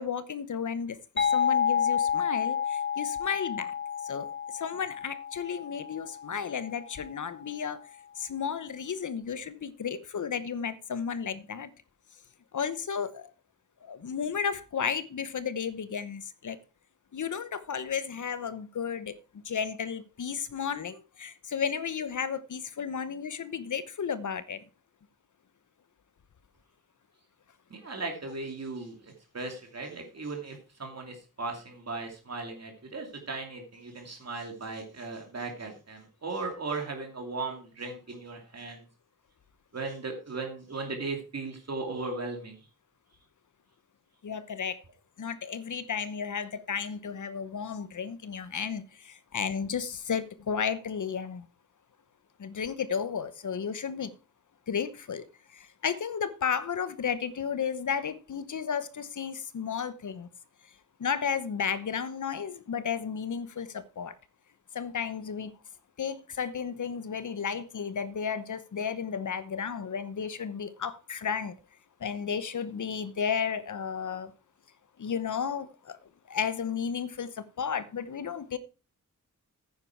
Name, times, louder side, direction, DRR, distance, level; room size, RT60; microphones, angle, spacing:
voice 1, 0.0-3.7 4.0-7.8 8.2-11.7 12.5-13.3 13.8-16.6 17.1-19.2 19.4-24.6 44.2-44.8 45.2-51.5 52.4-54.1 54.7-55.2 55.5-60.3 61.0-64.1 64.7-65.5 66.0-71.6 72.0-74.3 75.0-76.0 76.3-78.6, left 7 dB, 65° left, 1.0 m, -33 dB
sound 1, 1.2-6.6, left 7 dB, 35° left, 1.5 m, -30 dB
voice 2, 27.7-38.8 39.7-42.6, right 3 dB, 50° right, 2.6 m, -37 dB
9.7 x 9.5 x 4.5 m
wide cardioid pair, 125°, 33 cm